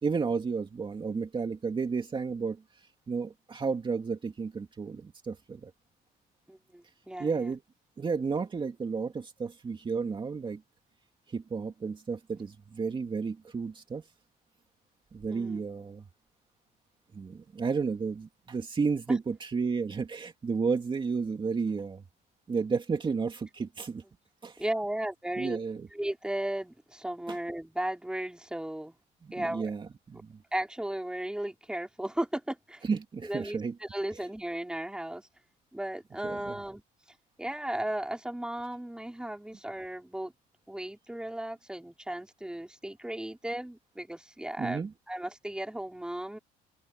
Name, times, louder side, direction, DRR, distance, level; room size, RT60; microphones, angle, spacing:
voice 1, 0.0-5.7 7.2-7.6 8.0-10.6 11.3-14.0 15.1-16.1 17.1-22.0 22.5-24.0 24.4-24.6 25.4-25.9 27.3-27.4 29.2-30.4 32.8-33.7 36.2-36.6 44.6-44.9, right 5 dB, 30° right, 2.5 m, -32 dB
voice 2, 6.5-7.5 15.3-15.6 19.1-19.2 24.6-25.6 25.9-29.0 29.3-29.7 30.5-32.8 33.2-35.3 35.7-36.8 37.4-40.3 40.7-46.4, right 1 dB, 5° right, 3.6 m, -35 dB
open air
cardioid pair, 110°, 17 cm